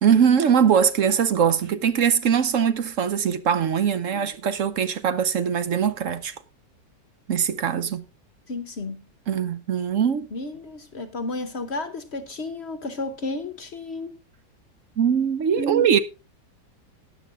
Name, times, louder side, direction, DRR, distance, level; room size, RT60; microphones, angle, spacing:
voice 1, 0.0-6.3 7.3-8.0 9.3-10.3 15.0-16.0, right 7 dB, 60° right, 1.0 m, -21 dB
voice 2, 8.5-9.1 10.3-14.1 15.6-15.9, left 1 dB, 45° left, 1.0 m, -32 dB
13.0 x 9.2 x 3.7 m
omnidirectional pair, 1.8 m